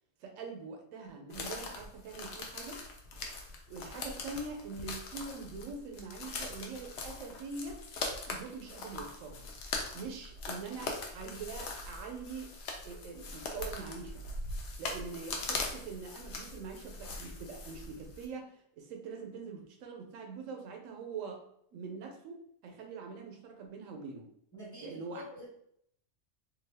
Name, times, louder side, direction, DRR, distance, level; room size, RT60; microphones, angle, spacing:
voice 1, 0.2-2.8 3.7-7.8 8.3-9.5 9.9-12.5 12.8-14.2 14.8-21.4 21.7-24.3 24.8-25.3, right 4 dB, 85° right, 3 dB, 1.0 m, -43 dB
sound 1, 1.3-18.3, left 3 dB, 70° left, 0.8 m, -41 dB
voice 2, 24.5-25.5, left 1 dB, 15° left, -6 dB, 0.7 m, -47 dB
2.7 x 2.3 x 3.3 m, 0.69 s
omnidirectional pair, 1.3 m